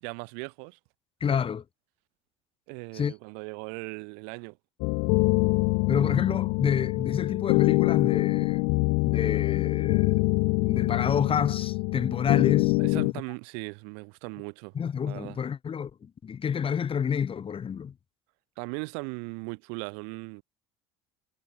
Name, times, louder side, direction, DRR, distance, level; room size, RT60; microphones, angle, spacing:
voice 1, 0.0-0.8 2.7-4.6 12.8-14.7 15.0-15.4 18.6-20.4, right 40 dB or more, 70° right, 3.2 m, -38 dB
voice 2, 1.2-1.6 2.9-3.1 5.9-8.7 9.1-10.2 10.6-12.8 13.0-13.1 14.7-17.9, left 7 dB, 35° left, 2.1 m, -29 dB
sound 1, 4.8-13.1, left 33 dB, 70° left, 0.7 m, -25 dB
hypercardioid pair, 70°, 16 cm